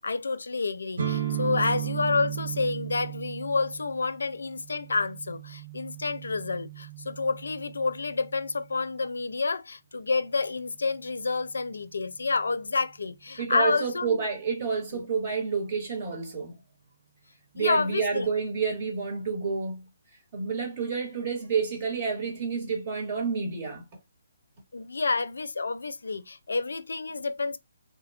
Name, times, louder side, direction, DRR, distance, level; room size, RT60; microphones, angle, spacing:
voice 1, 0.0-14.2 14.9-15.1 17.6-18.3 24.7-27.6, left 4 dB, 80° left, 0.4 m, -29 dB
sound 1, 1.0-8.7, right 11 dB, 70° right, 0.6 m, -36 dB
voice 2, 13.4-16.5 17.5-19.8 20.3-23.8, right 5 dB, 40° right, 1.4 m, -29 dB
3.0 x 2.1 x 2.3 m
hypercardioid pair, 150°, 0 cm